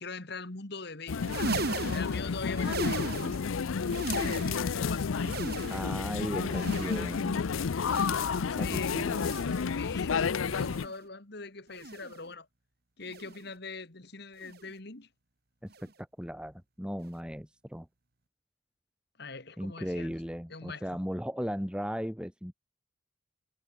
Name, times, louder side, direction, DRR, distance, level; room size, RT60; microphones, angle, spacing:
voice 1, 0.0-3.3 4.1-5.1 8.5-9.0 9.8-12.5 13.0-15.1 19.2-20.2 20.5-21.0, left 4 dB, 55° left, 2.1 m, -42 dB
sound 1, 1.1-10.9, left 5 dB, 85° left, 0.5 m, -31 dB
sound 2, 1.1-3.5 3.8-4.8 5.1-6.1 6.5-7.3 7.8-8.5 9.1-9.7 10.4-11.0 11.7-12.3 13.1-13.5 14.4-14.7 15.7-15.9 17.1-17.2, right 2 dB, 50° right, 1.9 m, -37 dB
voice 2, 5.7-7.5 8.6-9.3 15.6-15.9 16.2-17.9 19.6-22.5, equal, 5° right, 2.4 m, -36 dB
head